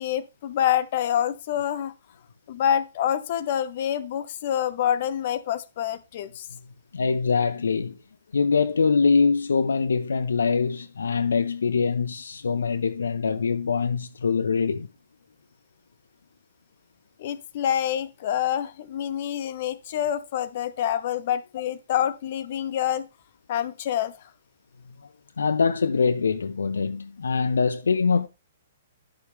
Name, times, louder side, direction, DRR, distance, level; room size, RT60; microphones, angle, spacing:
voice 1, 0.0-1.9 2.5-6.5 17.2-23.1 23.5-24.2, left 10 dB, 45° left, 0.9 m, -27 dB
voice 2, 6.9-8.0 8.3-14.9 25.4-28.3, left 5 dB, 70° left, 0.7 m, -23 dB
11.5 x 6.8 x 3.6 m
figure-of-eight pair, 120°, 0 cm